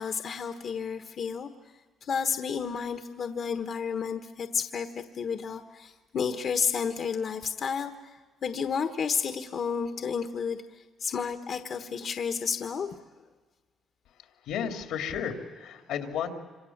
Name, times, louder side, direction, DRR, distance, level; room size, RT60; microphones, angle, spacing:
voice 1, 0.0-1.5 2.0-7.9 8.4-10.6 11.0-12.9, left 6 dB, 55° left, 7 dB, 1.2 m, -31 dB
voice 2, 14.1-16.3, left 8 dB, 90° left, 5 dB, 2.8 m, -33 dB
26.5 x 26.0 x 7.3 m, 1.4 s
cardioid pair, 90°, 0 cm